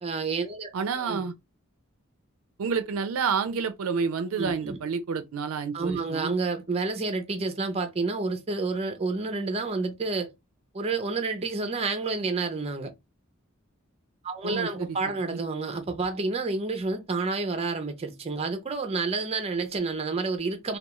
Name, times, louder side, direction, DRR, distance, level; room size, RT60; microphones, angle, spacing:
voice 1, 0.0-1.2 4.4-4.8 5.7-10.3 10.7-12.9 14.2-20.8, right 3 dB, 30° right, 0.5 m, -29 dB
voice 2, 0.7-1.3 2.6-6.3 14.4-15.0 15.3-15.4, right 5 dB, 80° right, 0.4 m, -29 dB
2.3 x 2.3 x 2.9 m
head